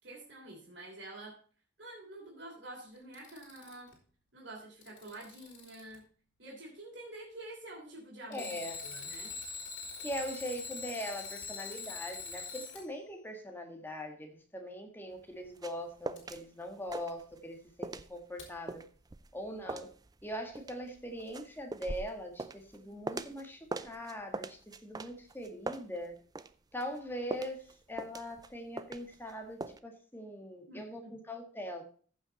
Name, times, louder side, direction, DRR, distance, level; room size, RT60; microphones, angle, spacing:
voice 1, 0.0-1.4 1.8-4.0 4.3-6.0 6.4-9.4 30.7-31.2, right 1 dB, 70° right, -3 dB, 3.4 m, -48 dB
Alarm, 3.0-3.9 4.6-6.0 8.3-12.8 16.2-16.3 18.4-18.5, left 4 dB, 75° left, 3.8 m, -43 dB
voice 2, 8.3-8.8 10.0-18.8 19.3-19.9 20.2-26.1 26.7-31.8, equal, 10° left, 3 dB, 1.6 m, -41 dB
sound 1, 15.2-16.4 16.7-17.5 17.8-23.4 23.7-26.5 26.8-29.3 29.6-29.8, right 2 dB, 20° right, 0.5 m, -41 dB
14.5 x 5.8 x 4.1 m, 0.42 s
head